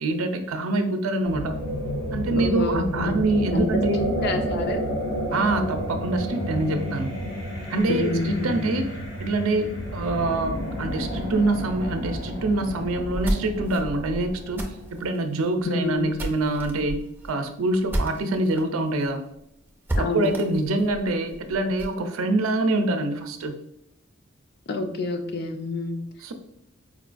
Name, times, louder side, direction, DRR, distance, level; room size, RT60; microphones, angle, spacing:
voice 1, 0.0-1.5 2.1-4.1 5.3-7.1 7.7-8.9 9.2-19.2 20.0-23.6 26.2-26.3, right 2 dB, 90° right, 6 dB, 0.5 m, -25 dB
sound 1, 1.2-15.1, equal, 65° left, 1.4 m, -31 dB
voice 2, 2.4-3.2 3.5-4.9 7.9-8.7 15.6-16.1 20.0-20.4 24.7-26.0, left 3 dB, 50° left, 5 dB, 0.4 m, -28 dB
sound 2, 12.9-18.6 19.0-19.1 19.4-19.5 19.9-22.0, right 1 dB, 10° right, 0.4 m, -32 dB
4.5 x 2.2 x 2.4 m, 0.81 s
head